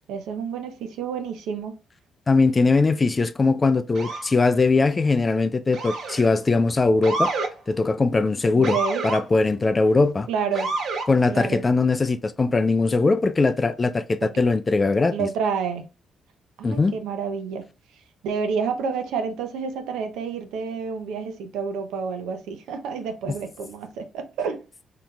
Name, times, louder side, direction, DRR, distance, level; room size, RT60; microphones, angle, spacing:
voice 1, 0.1-1.8 8.5-9.1 10.3-10.7 11.3-11.6 14.2-14.4 15.1-15.9 16.6-17.6 18.2-24.6, right 6 dB, 90° right, 0.6 m, -29 dB
voice 2, 2.3-7.3 7.7-8.8 9.0-10.3 11.1-15.3 16.6-16.9, left 3 dB, 30° left, 0.4 m, -20 dB
Motor vehicle (road) / Siren, 3.9-4.3 5.7-6.3 7.0-7.5 8.6-9.2 10.5-11.1, right 3 dB, 65° right, 0.9 m, -28 dB
3.8 x 2.9 x 2.3 m
cardioid pair, 90°, 0 cm